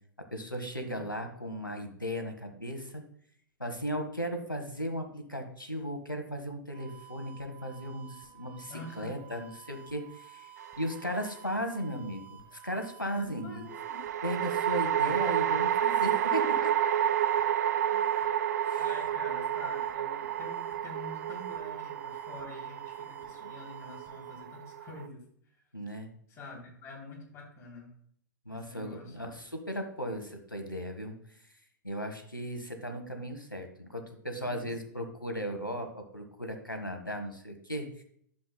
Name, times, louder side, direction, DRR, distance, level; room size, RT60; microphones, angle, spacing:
voice 1, 0.3-3.0 3.6-13.6 14.2-16.9 18.7-18.8 25.7-26.1 28.4-31.1 31.8-38.0, equal, 90° left, 6 dB, 1.2 m, -36 dB
sound 1, 6.7-24.4, right 11 dB, 10° right, 2.0 m, -52 dB
voice 2, 8.7-9.1 13.1-14.0 17.9-18.0 18.8-25.2 26.3-27.9 28.5-29.3 34.4-34.7, left 2 dB, 25° left, -2 dB, 3.2 m, -47 dB
sound 2, 10.6-11.3 13.7-25.1, right 10 dB, 55° right, 0.4 m, -30 dB
11.0 x 7.1 x 2.2 m, 0.66 s
figure-of-eight pair, 105°, 11 cm